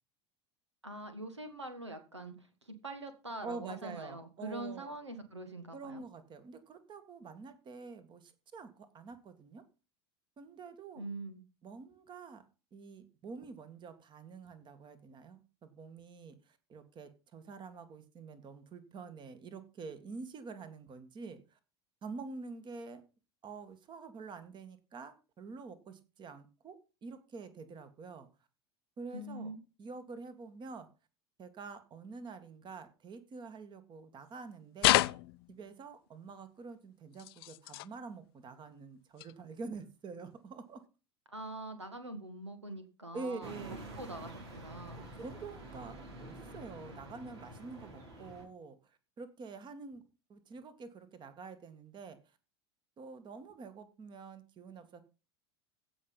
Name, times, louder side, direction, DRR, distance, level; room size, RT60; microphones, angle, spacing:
voice 1, 0.8-6.0 10.9-11.4 29.1-29.6 41.3-45.0, right 1 dB, 90° right, 10 dB, 1.7 m, -44 dB
voice 2, 3.4-4.9 5.7-9.6 10.4-11.1 11.6-12.5 12.7-21.6 22.0-23.0 23.4-28.3 29.0-29.5 29.8-30.9 31.4-35.0 35.5-40.8 43.1-43.7 44.7-50.0 50.3-52.2 53.0-55.0, right 4 dB, 35° right, 11 dB, 2.0 m, -47 dB
sound 1, 34.8-35.7 37.1-37.9 39.2-39.3 40.1-40.2, left 19 dB, 60° left, 0.5 m, -29 dB
sound 2, 43.4-48.4, right 1 dB, 65° right, 4.9 m, -48 dB
16.0 x 6.1 x 5.5 m, 0.33 s
figure-of-eight pair, 75°, 14 cm